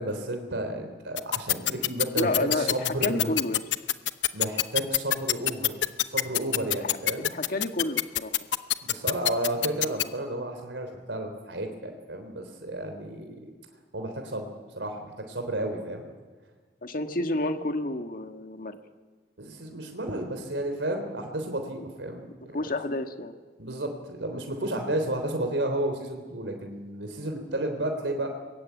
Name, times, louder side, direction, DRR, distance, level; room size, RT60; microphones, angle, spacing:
voice 1, 0.0-3.3 4.3-5.7 6.1-7.3 8.8-13.5 13.9-14.5 14.8-16.1 19.4-22.3 23.6-28.3, right 1 dB, 85° right, 4 dB, 3.5 m, -32 dB
sound 1, 1.2-10.0, left 12 dB, 90° left, 0.9 m, -24 dB
voice 2, 2.2-3.6 6.8-7.0 7.3-8.3 16.8-18.8 22.5-23.3 24.9-25.0, left 1 dB, 50° left, 7 dB, 1.7 m, -30 dB
25.0 x 21.5 x 9.3 m, 1.4 s
head